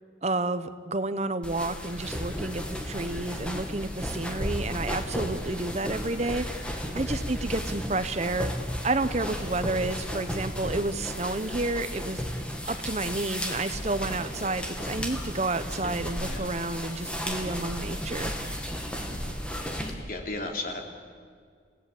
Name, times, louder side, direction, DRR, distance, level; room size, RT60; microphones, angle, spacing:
voice 1, 0.2-6.5 6.9-8.5 8.8-12.2 12.7-18.3, right 2 dB, 35° right, 12 dB, 0.9 m, -30 dB
sound 1, 1.4-19.9, equal, 5° left, 2.3 m, -34 dB
voice 2, 6.6-7.0 16.3-16.5 18.8-19.2 19.5-20.8, left 2 dB, 50° left, 2 dB, 3.5 m, -37 dB
29.5 x 17.0 x 8.6 m, 2.1 s
head